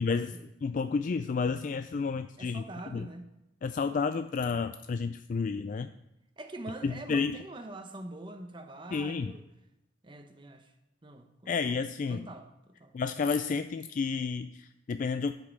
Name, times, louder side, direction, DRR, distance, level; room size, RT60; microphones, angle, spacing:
voice 1, 0.0-2.6 2.9-3.1 3.6-5.9 6.8-7.4 8.9-9.3 11.5-12.3 12.9-15.3, left 5 dB, 45° left, 0.3 m, -31 dB
voice 2, 2.4-3.3 6.4-9.4 10.0-10.7 11.0-11.6 12.1-12.9, right 2 dB, 25° right, 0.9 m, -44 dB
12.5 x 5.3 x 6.1 m
head